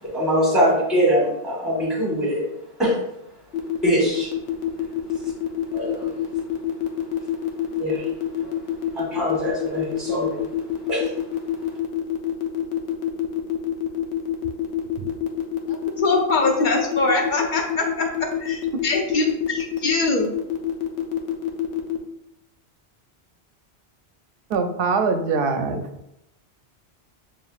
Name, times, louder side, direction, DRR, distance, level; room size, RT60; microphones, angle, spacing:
voice 1, 0.0-2.4 2.8-3.0 3.8-4.3 5.7-6.1 7.7-8.1 8.9-10.4 10.9-11.1, equal, ahead, -3 dB, 1.2 m, -22 dB
sound 1, 3.5-22.0, left 11 dB, 80° left, 1.0 m, -26 dB
voice 2, 15.7-20.3, left 3 dB, 55° left, 2 dB, 0.7 m, -23 dB
voice 3, 24.5-25.8, right 4 dB, 65° right, 7 dB, 0.7 m, -22 dB
7.0 x 2.6 x 2.4 m, 0.81 s
omnidirectional pair, 1.1 m